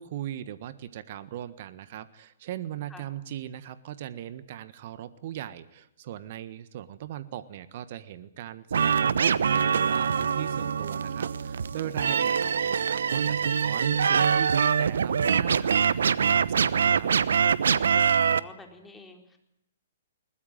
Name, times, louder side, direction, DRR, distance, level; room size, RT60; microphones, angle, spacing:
voice 1, 0.0-17.1, right 11 dB, 50° right, 14 dB, 1.5 m, -39 dB
sound 1, 8.7-18.4, right 7 dB, 70° right, 1.0 m, -24 dB
voice 2, 18.1-19.4, left 3 dB, 10° left, 4 dB, 4.1 m, -48 dB
21.5 x 20.5 x 9.3 m, 0.81 s
hypercardioid pair, 125°, 0 cm